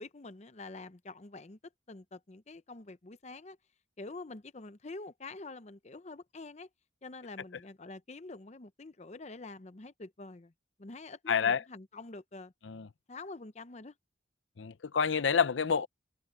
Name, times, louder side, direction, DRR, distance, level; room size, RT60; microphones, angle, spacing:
voice 1, 0.0-1.6 1.9-3.6 4.0-6.7 7.0-10.5 10.8-12.5 13.1-13.9, left 3 dB, 35° left, 0.7 m, -46 dB
voice 2, 11.3-11.6 12.6-12.9 14.6-15.9, left 6 dB, 85° left, 0.6 m, -28 dB
head